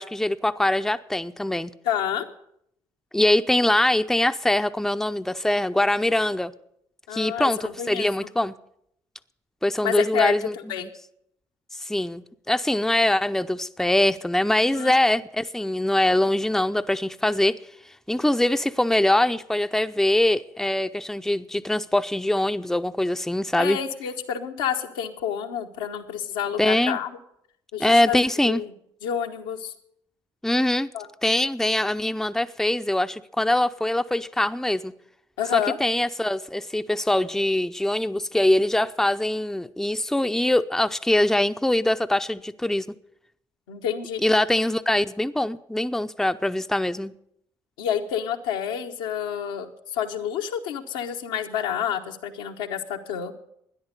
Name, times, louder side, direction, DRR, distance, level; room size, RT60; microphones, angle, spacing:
voice 1, 0.0-1.7 3.1-6.5 7.1-8.5 9.6-10.5 10.8-10.9 11.8-17.6 18.1-23.8 26.6-27.0 27.8-28.6 30.4-30.9 31.2-34.9 35.5-42.9 44.2-47.1, left 1 dB, 5° left, 0.6 m, -23 dB
voice 2, 1.8-2.3 7.1-8.3 9.8-10.9 14.6-14.9 23.6-27.2 27.7-28.2 28.5-28.7 29.0-29.7 30.9-31.1 35.4-35.8 43.7-44.2 47.8-53.3, left 9 dB, 85° left, 1.1 m, -29 dB
13.0 x 10.5 x 6.6 m
hypercardioid pair, 50°, 11 cm